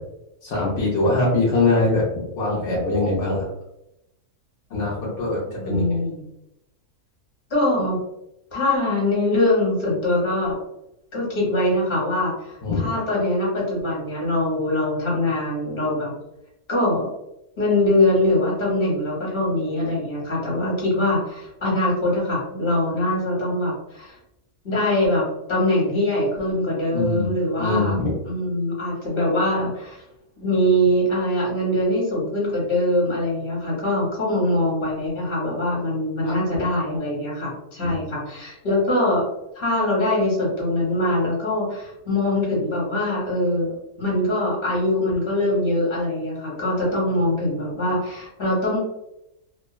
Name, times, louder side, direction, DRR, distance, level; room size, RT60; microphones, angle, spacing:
voice 1, 0.4-3.4 4.7-6.0 12.6-12.9 26.9-27.3 27.6-28.1 36.2-36.3 37.8-37.9, left 2 dB, 60° left, -5 dB, 0.9 m, -23 dB
voice 2, 5.4-6.2 7.5-8.0 8.5-10.6 11.1-16.1 16.7-17.1 17.6-24.1 24.6-27.9 28.2-30.0 30.4-39.2 39.5-48.8, left 1 dB, 40° left, -5 dB, 1.2 m, -23 dB
2.9 x 2.2 x 2.2 m, 0.85 s
omnidirectional pair, 1.6 m